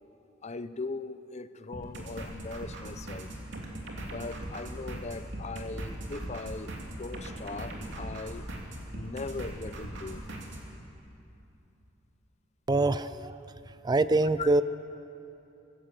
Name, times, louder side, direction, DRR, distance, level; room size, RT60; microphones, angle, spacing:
voice 1, 0.4-3.4 4.1-8.5 8.9-10.3 14.4-14.5, left 3 dB, 35° left, 13 dB, 0.7 m, -39 dB
sound 1, 1.7-10.6, right 1 dB, 65° right, 3.2 m, -40 dB
voice 2, 12.7-14.6, right 2 dB, 20° right, 14 dB, 0.4 m, -25 dB
24.5 x 16.0 x 7.6 m, 2.8 s
head